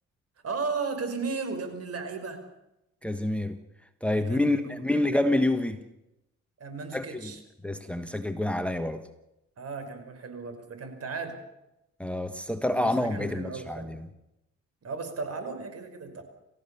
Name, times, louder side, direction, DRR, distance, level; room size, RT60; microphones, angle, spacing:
voice 1, 0.4-2.4 4.2-5.3 6.6-7.4 9.6-11.4 12.7-14.0 14.8-16.2, right 4 dB, 55° right, 5.7 m, -35 dB
voice 2, 3.0-3.6 4.0-5.8 6.9-7.3 7.6-9.0 12.0-14.1, left 1 dB, 5° left, 1.5 m, -27 dB
30.0 x 15.0 x 7.1 m
cardioid pair, 90°, 30 cm